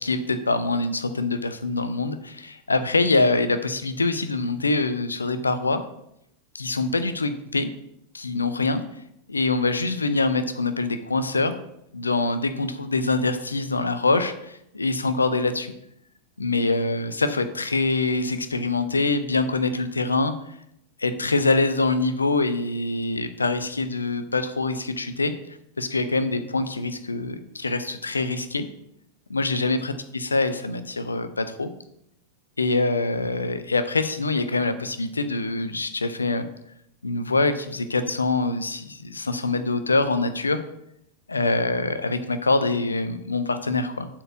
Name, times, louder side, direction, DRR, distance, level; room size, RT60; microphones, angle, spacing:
voice 1, 0.0-5.8 6.5-7.7 8.1-8.8 9.3-11.6 11.9-15.7 16.4-20.3 21.0-25.3 25.8-28.7 29.3-31.7 32.6-36.5 37.0-40.6 41.3-44.1, left 3 dB, 75° left, 11 dB, 0.7 m, -24 dB
7.8 x 4.6 x 6.3 m, 0.77 s
figure-of-eight pair, 90°, 0 cm